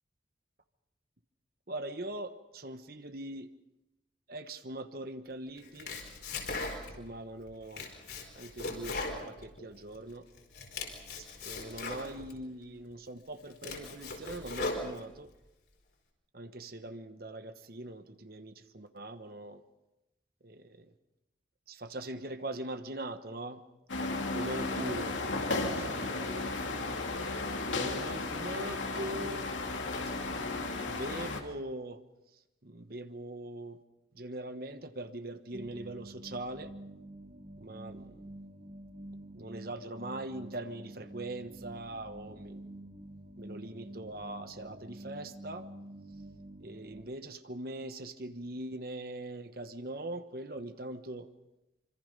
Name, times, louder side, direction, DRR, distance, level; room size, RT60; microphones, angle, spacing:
voice 1, 1.7-3.5 4.3-5.9 7.0-7.9 8.4-10.3 11.4-15.3 16.3-19.6 20.4-20.9 21.7-23.6 24.0-26.9 27.4-29.5 30.2-32.0 32.6-33.8 34.1-36.7 37.6-38.2 39.3-42.7 43.4-45.7 46.6-51.3, right 1 dB, 50° right, 9 dB, 1.2 m, -42 dB
Domestic sounds home sounds, 5.6-7.1 7.5-10.0 10.4-12.4 12.9-13.0 13.4-15.3, left 2 dB, 60° left, 4.7 m, -39 dB
sound 1, 23.9-31.4, left 3 dB, 85° left, 2.7 m, -34 dB
sound 2, 35.5-47.0, right 1 dB, 35° right, 1.4 m, -48 dB
26.0 x 25.5 x 5.4 m, 0.94 s
head